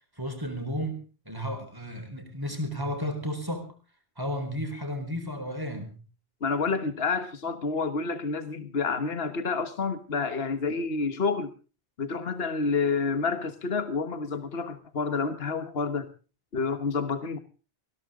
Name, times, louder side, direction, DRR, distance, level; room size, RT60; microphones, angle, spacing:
voice 1, 0.2-1.0 1.3-3.7 4.2-6.0, equal, 20° right, 5 dB, 4.3 m, -33 dB
voice 2, 6.4-11.5 12.0-16.1 16.5-17.4, left 4 dB, 65° left, 10 dB, 1.6 m, -29 dB
20.5 x 16.5 x 3.8 m, 0.36 s
omnidirectional pair, 1.1 m